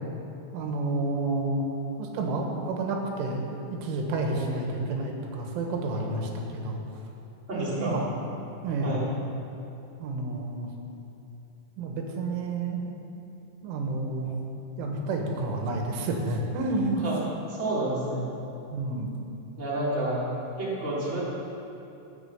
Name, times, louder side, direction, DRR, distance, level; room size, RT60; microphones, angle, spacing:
voice 1, 0.5-1.6 2.0-3.4 3.7-6.8 7.8-8.1 8.6-9.0 10.0-10.7 11.8-12.9 13.6-14.3 14.8-17.0 18.7-19.1, right 2 dB, 90° right, 1 dB, 3.9 m, -30 dB
voice 2, 7.5-7.9 8.8-9.1 17.0-17.1 17.5-18.3 19.6-20.3 20.6-21.2, right 1 dB, 15° right, -8 dB, 2.9 m, -29 dB
17.0 x 8.0 x 7.0 m, 2.8 s
omnidirectional pair, 5.5 m